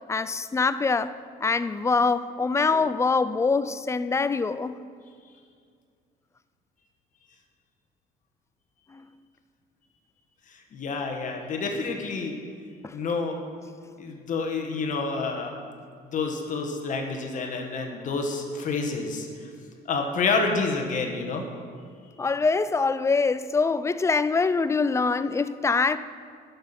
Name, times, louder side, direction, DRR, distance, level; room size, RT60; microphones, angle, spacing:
voice 1, 0.1-1.1 1.4-4.8 12.8-12.9 22.2-26.0, left 4 dB, 15° left, 0.3 m, -24 dB
voice 2, 10.5-12.4 12.9-13.4 14.0-15.5 16.1-19.3 19.8-21.4, left 4 dB, 50° left, 1.3 m, -28 dB
10.0 x 7.0 x 5.8 m
cardioid pair, 110°, 17 cm